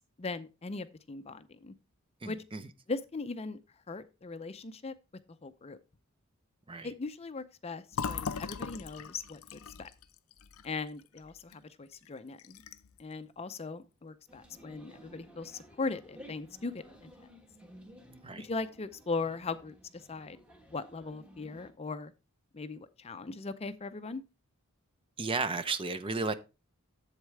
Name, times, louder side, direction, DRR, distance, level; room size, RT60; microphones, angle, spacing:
voice 1, 0.2-1.7 2.3-2.4 2.9-3.6 3.9-4.9 5.4-5.8 6.8-9.9 10.6-12.6 13.0-17.3 18.4-20.4 20.7-22.1 22.5-24.2, left 3 dB, 30° left, 0.5 m, -39 dB
voice 2, 2.2-2.6 6.7-6.9 18.2-18.5 25.2-26.3, right 4 dB, 25° right, 0.6 m, -33 dB
Fill (with liquid), 7.9-11.6 11.9-12.1 12.4-13.0, left 6 dB, 85° left, 0.5 m, -39 dB
sound 1, 14.3-21.7, equal, 5° right, 1.2 m, -55 dB
8.1 x 7.4 x 3.2 m
head